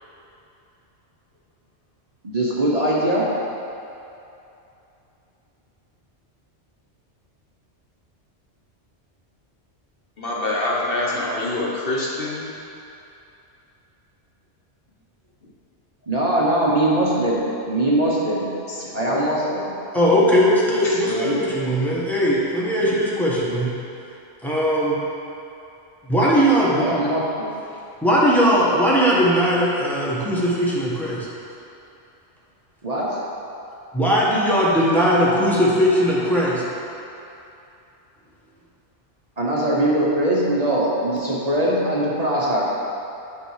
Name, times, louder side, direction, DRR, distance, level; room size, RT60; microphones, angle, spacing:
voice 1, 2.2-3.3 16.1-18.5 18.9-19.7 26.8-27.5 32.8-33.2 39.4-42.7, right 1 dB, 35° right, -6 dB, 1.2 m, -21 dB
voice 2, 10.2-12.5 18.7-19.3 20.8-21.4, left 2 dB, 55° left, -4 dB, 1.2 m, -26 dB
voice 3, 19.9-23.7 24.4-25.0 26.0-26.9 28.0-31.3 33.9-36.6, equal, ahead, -7 dB, 1.5 m, -19 dB
8.8 x 5.2 x 4.9 m, 2.8 s
omnidirectional pair, 1.2 m